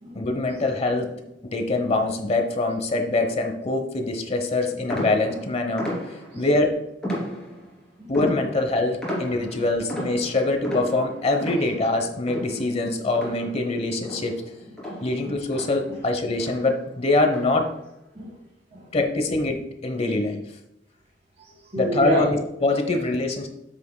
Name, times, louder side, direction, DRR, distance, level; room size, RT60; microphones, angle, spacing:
voice 1, 0.1-5.9 6.3-6.8 8.1-14.4 15.0-17.7 18.9-20.5 21.8-23.5, left 2 dB, 35° left, 5 dB, 1.0 m, -24 dB
sound 1, 4.9-6.5 7.0-7.8 8.1-13.8 14.0-16.1 16.4-16.8 17.3-17.8, equal, 5° left, 3.1 m, -33 dB
voice 2, 18.1-18.9 21.3-22.4 22.9-23.0, equal, 35° right, -4 dB, 1.8 m, -31 dB
10.0 x 7.6 x 2.3 m, 0.84 s
head